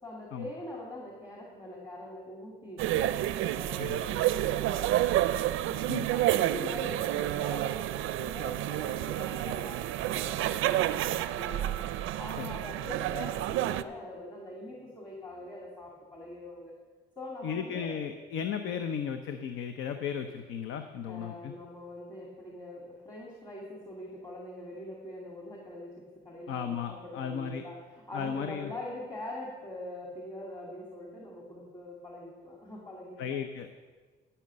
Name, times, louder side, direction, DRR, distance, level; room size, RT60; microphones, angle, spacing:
voice 1, 0.0-5.3 5.6-11.8 12.2-16.7 17.2-18.0 18.6-18.9 21.0-33.4, left 1 dB, 20° left, -3 dB, 2.4 m, -43 dB
sound 1, 2.8-13.8, right 14 dB, 90° right, 0.4 m, -29 dB
voice 2, 17.4-21.5 26.5-27.6 28.1-28.7 33.2-33.7, left 7 dB, 90° left, 7 dB, 0.7 m, -35 dB
13.5 x 5.8 x 7.5 m, 1.4 s
cardioid pair, 90°, 20 cm